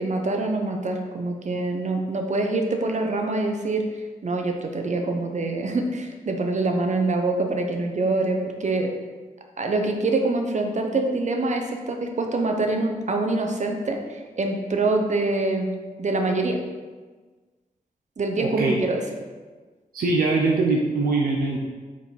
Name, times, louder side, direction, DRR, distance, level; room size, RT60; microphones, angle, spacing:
voice 1, 0.0-3.8 4.2-8.9 9.6-15.7 16.0-16.6 18.2-19.0, right 2 dB, 50° right, 3 dB, 1.0 m, -25 dB
voice 2, 18.4-18.8 19.9-21.6, right 3 dB, 85° right, -1 dB, 0.8 m, -22 dB
5.9 x 4.3 x 4.2 m, 1.4 s
cardioid pair, 60°, 15 cm